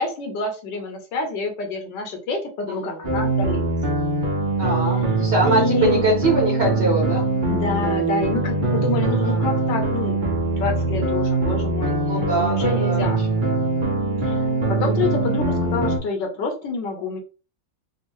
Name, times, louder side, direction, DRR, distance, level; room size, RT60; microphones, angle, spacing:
voice 1, 0.0-3.7 4.9-6.0 7.5-10.2 10.6-13.3 14.2-17.2, left 3 dB, 75° left, 3 dB, 1.5 m, -28 dB
sound 1, 3.0-16.0, right 2 dB, 55° right, 0.5 m, -22 dB
voice 2, 4.6-7.3 9.0-9.4 12.0-13.1, right 2 dB, 40° right, -4 dB, 1.0 m, -23 dB
3.5 x 2.5 x 3.0 m, 0.34 s
omnidirectional pair, 2.0 m